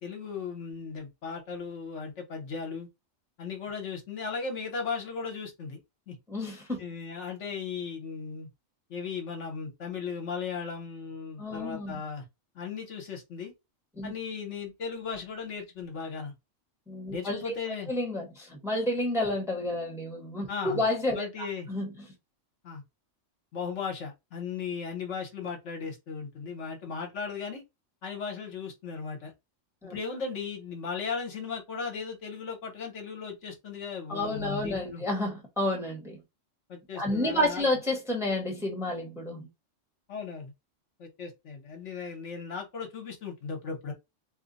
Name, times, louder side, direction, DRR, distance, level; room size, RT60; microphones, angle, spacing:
voice 1, 0.0-2.9 3.4-5.8 6.1-6.2 6.8-8.5 8.9-12.2 12.5-13.5 14.0-16.3 17.1-17.9 20.5-20.8 21.1-21.7 22.6-22.8 23.5-27.6 28.0-29.3 29.8-35.0 36.7-37.7 40.1-40.5 41.0-43.9, left 5 dB, 70° left, 1.3 m, -36 dB
voice 2, 6.3-6.8 11.4-12.0 14.0-14.1 16.9-17.5 17.9-21.9 29.8-30.0 34.1-36.2 36.9-39.5, left 1 dB, ahead, 1.0 m, -30 dB
2.8 x 2.2 x 3.9 m
omnidirectional pair, 1.3 m